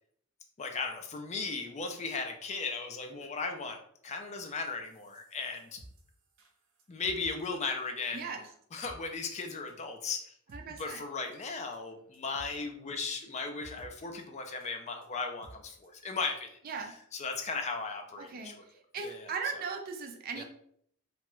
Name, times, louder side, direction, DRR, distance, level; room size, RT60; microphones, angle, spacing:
voice 1, 0.6-3.8 4.0-5.8 6.9-8.3 8.7-10.3 10.8-16.5 16.8-18.6 19.0-19.3 20.3-20.4, left 4 dB, 30° left, 4 dB, 0.4 m, -36 dB
sound 1, 4.9-7.3 7.6-7.7 8.0-8.1 8.4-8.5 8.8-9.0 9.3-9.4 9.7-9.8 10.1-10.2 10.5-10.9 11.3-11.4 11.7-11.8 12.1-12.6 12.9-13.1 13.4-13.9 14.2-14.3 14.6-14.7 15.0-15.1 15.4-15.5 15.8-15.9 16.2-16.4 16.7-16.8 17.1-17.2, right 1 dB, 85° right, 0.7 m, -54 dB
voice 2, 8.1-8.5 10.5-11.0 16.6-16.9 18.2-18.5 18.9-20.4, right 5 dB, 45° right, 3 dB, 0.4 m, -38 dB
2.9 x 2.2 x 3.0 m, 0.65 s
head